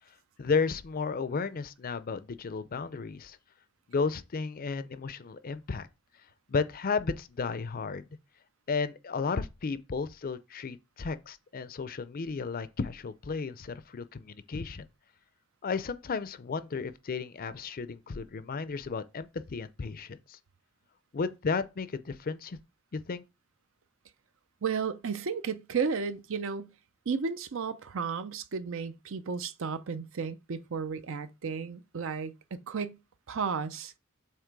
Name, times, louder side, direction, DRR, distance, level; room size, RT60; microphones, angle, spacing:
voice 1, 0.4-3.4 3.9-5.9 6.5-8.1 8.7-14.9 15.6-20.4 21.1-22.6 22.9-23.2, left 4 dB, 45° left, 0.5 m, -33 dB
voice 2, 24.6-26.7 27.1-33.0 33.3-33.9, right 5 dB, 65° right, 0.5 m, -33 dB
7.4 x 3.0 x 4.6 m
head